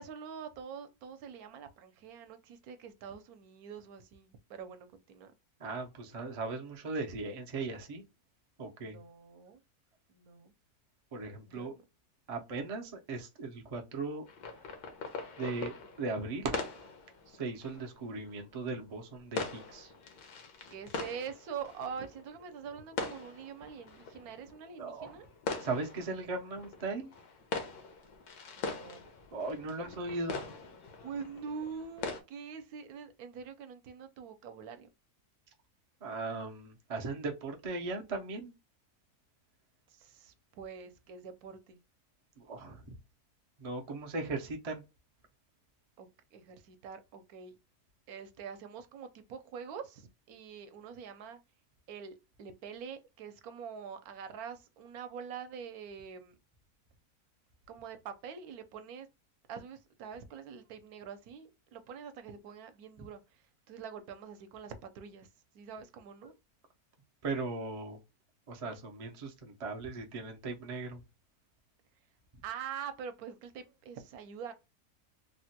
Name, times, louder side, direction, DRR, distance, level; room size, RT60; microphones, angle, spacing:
voice 1, 0.0-5.3 8.8-9.6 10.1-10.5 11.4-11.8 20.7-25.3 28.6-29.0 31.0-34.9 39.9-41.8 46.0-47.5 48.1-51.4 51.9-56.4 57.7-59.1 59.5-65.3 65.5-66.3 72.4-74.5, right 7 dB, 75° right, 1.1 m, -45 dB
voice 2, 5.6-8.0 8.6-9.0 11.1-11.7 12.3-14.2 15.4-16.6 17.3-19.9 24.8-25.2 25.6-27.1 29.3-30.4 36.0-38.5 42.4-42.8 43.6-44.8 67.2-68.0 68.5-71.0, right 3 dB, 55° right, 0.4 m, -38 dB
sound 1, 14.3-32.2, left 4 dB, 85° left, 1.3 m, -43 dB
3.5 x 2.1 x 2.7 m
omnidirectional pair, 1.6 m